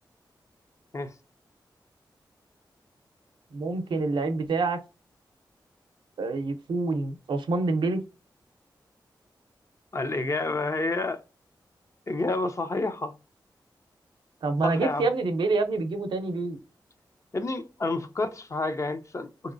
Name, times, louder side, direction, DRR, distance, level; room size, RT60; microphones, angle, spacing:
voice 1, 3.5-4.8 6.2-8.0 14.4-16.6, right 3 dB, 85° right, 0.5 m, -27 dB
voice 2, 9.9-11.2 12.1-13.1 14.6-15.1 17.3-19.5, left 2 dB, 40° left, 0.5 m, -29 dB
3.0 x 2.8 x 2.5 m
cardioid pair, 70°, 8 cm